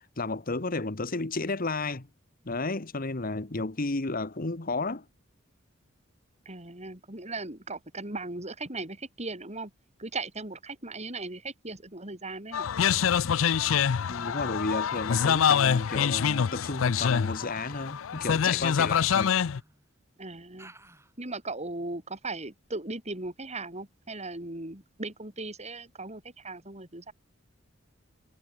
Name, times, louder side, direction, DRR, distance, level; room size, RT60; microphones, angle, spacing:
voice 1, 0.2-2.1 2.4-5.0 14.1-19.3, left 3 dB, 45° left, 1.4 m, -32 dB
voice 2, 6.5-9.7 10.0-12.7 20.2-20.7 21.2-27.1, right 2 dB, 35° right, 7.4 m, -38 dB
sound 1, 12.5-19.6, left 8 dB, 85° left, 0.5 m, -25 dB
Human voice, 13.3-13.7 15.1-15.5 16.9-17.5 18.9-19.8 20.6-21.1, right 2 dB, 15° right, 7.8 m, -52 dB
head